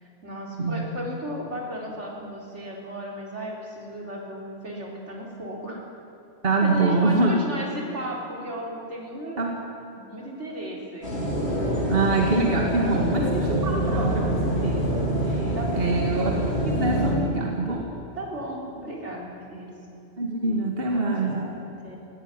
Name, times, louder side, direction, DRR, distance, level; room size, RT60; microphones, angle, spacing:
voice 1, 0.0-5.8 6.6-9.5 9.9-11.1 12.8-13.0 15.5-16.1 18.1-19.7 20.9-22.0, equal, 85° right, -1 dB, 4.5 m, -35 dB
voice 2, 0.6-0.9 6.4-7.3 9.4-9.5 11.9-16.3 16.6-17.9 20.2-21.5, right 3 dB, 55° right, 0 dB, 2.4 m, -25 dB
sound 1, 11.0-17.1, right 1 dB, 65° left, 5.0 m, -25 dB
20.0 x 17.0 x 9.9 m, 3.0 s
omnidirectional pair, 1.2 m